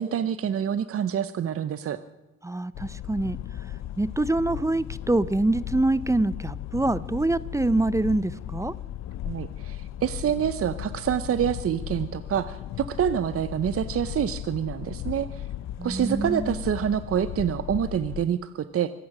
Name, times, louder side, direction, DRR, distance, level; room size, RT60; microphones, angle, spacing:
voice 1, 0.0-2.0 9.2-15.4 15.8-18.9, right 9 dB, 50° right, 13 dB, 0.8 m, -27 dB
voice 2, 2.4-3.4 4.0-8.7 15.8-16.6, right 2 dB, 10° right, 18 dB, 0.6 m, -25 dB
sound 1, 2.7-18.2, left 11 dB, 60° left, 0.6 m, -36 dB
24.5 x 9.3 x 6.1 m, 1.0 s
cardioid pair, 90°, 30 cm